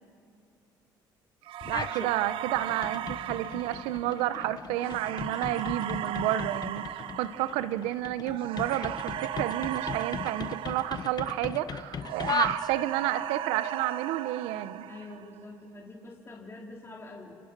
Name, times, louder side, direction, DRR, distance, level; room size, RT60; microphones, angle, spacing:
sound 1, 1.5-11.7 12.0-15.4, right 13 dB, 65° right, 0.7 m, -37 dB
sound 2, 1.6-2.1 2.4-13.1, left 7 dB, 45° left, 0.9 m, -38 dB
voice 1, 1.7-14.9, right 13 dB, 80° right, 13 dB, 1.0 m, -31 dB
voice 2, 14.9-17.4, left 2 dB, 25° left, -2 dB, 3.8 m, -45 dB
29.5 x 27.5 x 6.2 m, 2.6 s
supercardioid pair, 75°, 10 cm